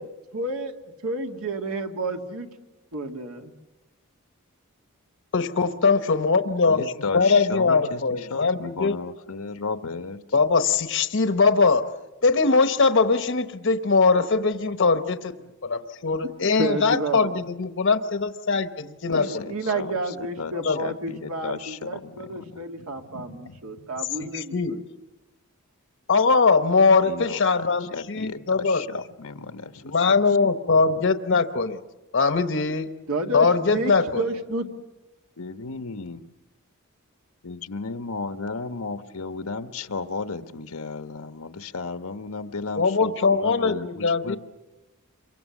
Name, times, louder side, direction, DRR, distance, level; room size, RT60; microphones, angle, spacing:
voice 1, 0.3-0.7 1.0-2.5 2.9-3.5 16.6-17.4 19.1-24.8 33.1-34.7, right 2 dB, 80° right, 4 dB, 2.2 m, -30 dB
voice 2, 5.3-9.0 10.3-11.8 12.2-15.3 15.6-19.5 20.6-20.8 24.2-24.8 26.1-28.8 29.9-31.8 32.1-32.9 33.3-34.2 42.8-44.4, left 4 dB, 60° left, 9 dB, 1.0 m, -21 dB
voice 3, 6.7-10.4 19.1-23.8 24.2-24.3 27.0-30.2 30.7-31.0 35.4-36.3 37.4-44.4, left 4 dB, 85° left, 9 dB, 1.2 m, -35 dB
27.5 x 24.0 x 7.3 m, 1.0 s
head